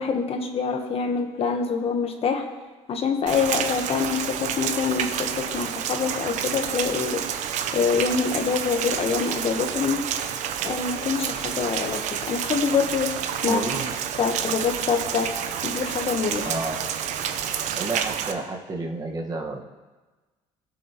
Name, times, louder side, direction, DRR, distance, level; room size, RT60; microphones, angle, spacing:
voice 1, 0.0-2.4 2.9-7.2 7.7-10.0 10.6-12.0 12.3-13.1 13.4-13.7 14.2-15.3 15.6-16.5, left 6 dB, 50° left, 5 dB, 1.2 m, -25 dB
Rain, 3.3-18.3, right 9 dB, 65° right, 0.7 m, -29 dB
voice 2, 13.4-13.9 16.4-16.8 17.7-19.6, right 3 dB, 30° right, 0 dB, 1.5 m, -30 dB
15.5 x 7.2 x 3.0 m, 1.3 s
supercardioid pair, 90°, 13 cm